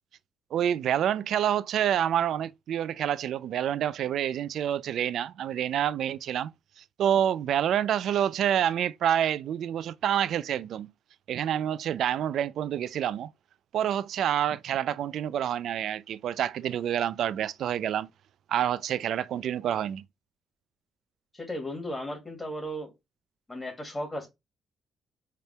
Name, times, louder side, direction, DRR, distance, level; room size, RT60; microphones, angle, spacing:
voice 1, 0.5-6.5 7.0-10.9 11.3-13.3 13.7-18.1 18.5-20.0, right 10 dB, 70° right, 0.3 m, -27 dB
voice 2, 21.3-22.9 23.5-24.3, equal, 15° left, 2.3 m, -35 dB
5.0 x 4.3 x 2.2 m
cardioid pair, 90°, 0 cm